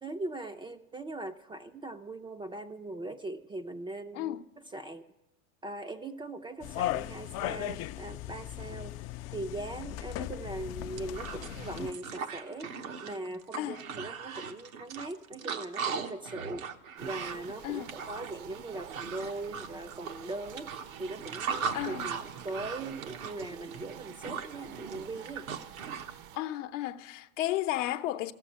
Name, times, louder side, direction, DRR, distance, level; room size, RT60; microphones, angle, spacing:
voice 1, 0.0-4.4 4.7-5.0 5.6-9.0 9.3-12.7 13.0-16.7 17.0-20.7 21.0-25.5, right 2 dB, 15° right, 0.4 m, -40 dB
voice 2, 4.1-4.4 13.6-13.8 17.6-17.9 21.7-22.1 26.3-28.3, left 14 dB, 65° left, 0.8 m, -33 dB
sound 1, 6.6-11.9, left 14 dB, 40° left, 0.5 m, -37 dB
sound 2, 10.4-10.5 10.8-26.1, right 6 dB, 80° right, 1.0 m, -39 dB
sound 3, 17.0-26.4, right 9 dB, 50° right, 0.7 m, -48 dB
14.0 x 7.4 x 9.9 m
hypercardioid pair, 90°, 40 cm